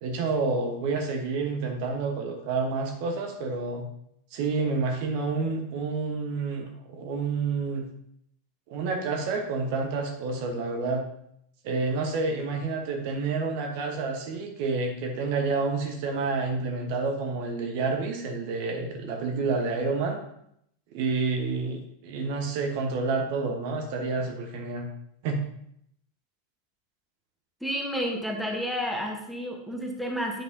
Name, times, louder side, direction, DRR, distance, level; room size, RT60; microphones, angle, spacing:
voice 1, 0.0-3.9 4.3-7.9 8.7-11.0 11.6-20.2 20.9-24.9 25.2-25.4, right 4 dB, 50° right, 3 dB, 1.1 m, -29 dB
voice 2, 27.6-30.4, equal, ahead, 1 dB, 1.2 m, -31 dB
9.0 x 5.3 x 2.8 m, 0.72 s
figure-of-eight pair, 90°, 0 cm